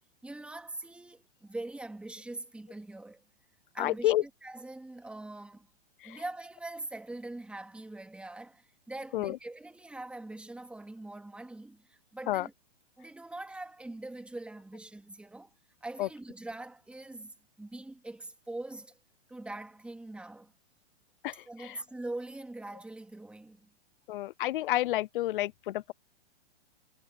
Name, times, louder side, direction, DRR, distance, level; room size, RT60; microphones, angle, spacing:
voice 1, 0.2-3.2 3.7-5.7 6.0-12.5 13.0-15.5 15.8-19.0 19.3-20.5 21.5-23.7, right 2 dB, 5° right, 2.7 m, -43 dB
voice 2, 3.8-4.2 6.0-6.2 9.1-9.4 12.3-12.5 16.0-16.1 21.2-21.7 24.1-25.9, left 15 dB, 55° left, 0.5 m, -30 dB
hypercardioid pair, 150°, 33 cm